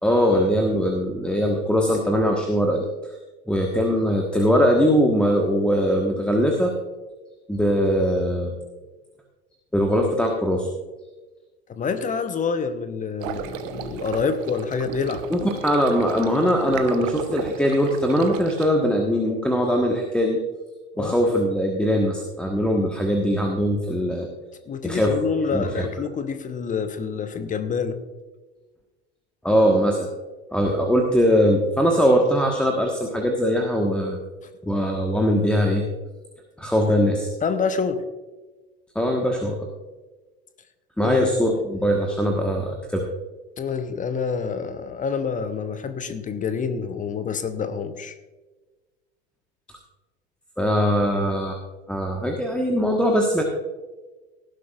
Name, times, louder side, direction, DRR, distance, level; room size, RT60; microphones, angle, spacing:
voice 1, 0.0-3.1 3.5-6.7 7.5-8.5 9.7-10.7 15.3-20.4 21.0-24.3 24.8-25.2 25.5-25.9 29.4-30.1 30.5-34.2 34.6-35.9 36.6-37.3 38.9-39.7 41.0-43.1 50.6-51.6 51.9-53.4, equal, 5° left, 0 dB, 1.4 m, -21 dB
voice 2, 11.7-15.2 21.0-21.2 24.7-28.0 37.4-38.0 41.0-41.3 43.6-48.2, left 5 dB, 25° left, 10 dB, 0.9 m, -27 dB
sound 1, 13.2-18.7, right 9 dB, 50° right, 1.2 m, -35 dB
18.0 x 11.0 x 2.5 m, 1.2 s
figure-of-eight pair, 75°, 33 cm